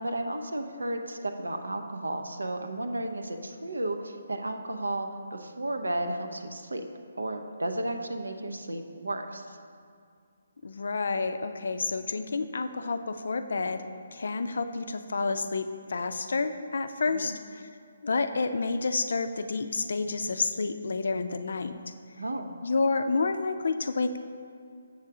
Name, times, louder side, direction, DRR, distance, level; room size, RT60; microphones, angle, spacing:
voice 1, 0.0-6.8 7.2-9.6 17.0-17.3 22.2-22.5, right 1 dB, 80° right, 5 dB, 0.6 m, -33 dB
voice 2, 10.6-17.6 18.0-21.7 22.6-24.2, left 4 dB, 65° left, 9 dB, 0.4 m, -29 dB
7.2 x 6.5 x 3.6 m, 2.3 s
figure-of-eight pair, 145°, 0 cm